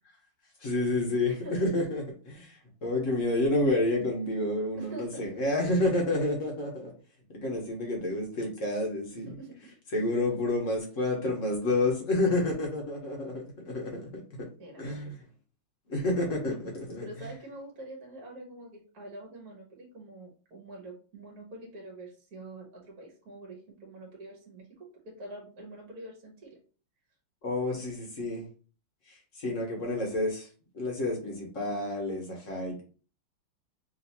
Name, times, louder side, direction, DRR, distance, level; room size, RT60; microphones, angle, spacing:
voice 1, 0.6-6.9 7.3-9.4 9.9-14.5 14.8-15.1 15.9-17.1 27.4-28.5 29.4-30.5 30.7-32.8, left 2 dB, 45° left, 0 dB, 1.4 m, -29 dB
voice 2, 1.3-1.6 4.8-5.3 5.7-5.8 6.2-6.3 9.3-9.7 14.6-15.1 17.0-26.6, right 1 dB, 50° right, -1 dB, 1.6 m, -46 dB
5.5 x 2.8 x 2.9 m, 0.38 s
omnidirectional pair, 2.3 m